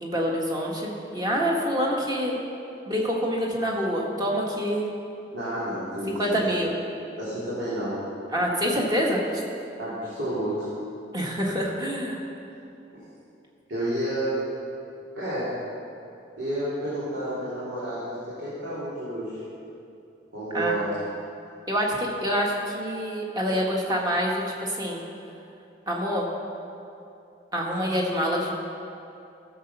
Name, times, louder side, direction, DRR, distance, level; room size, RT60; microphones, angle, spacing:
voice 1, 0.0-2.4 2.9-4.9 6.1-6.7 8.3-9.2 11.1-12.2 20.5-20.7 21.7-25.0 25.9-26.3 27.5-28.5, equal, 20° right, -2 dB, 1.6 m, -26 dB
voice 2, 5.3-6.4 7.2-8.0 9.8-10.7 13.7-14.5 15.1-15.5 16.4-19.4 20.3-20.9, right 1 dB, 80° right, -10 dB, 3.0 m, -30 dB
14.0 x 7.0 x 5.4 m, 2.7 s
head